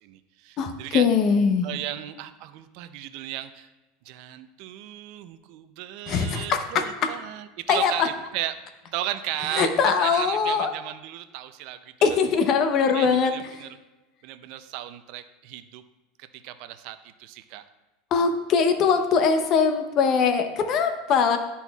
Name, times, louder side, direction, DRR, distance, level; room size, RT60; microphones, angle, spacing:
voice 1, 0.0-1.1 1.6-3.7 4.1-8.6 8.9-11.9 12.9-13.8 14.2-15.8 16.4-17.6, right 13 dB, 60° right, 10 dB, 0.4 m, -35 dB
voice 2, 0.6-1.7 6.1-7.1 7.7-8.1 9.5-10.7 12.0-13.3 18.1-21.4, left 5 dB, 45° left, 7 dB, 0.7 m, -22 dB
10.5 x 4.2 x 2.3 m, 1.1 s
supercardioid pair, 120°, 0 cm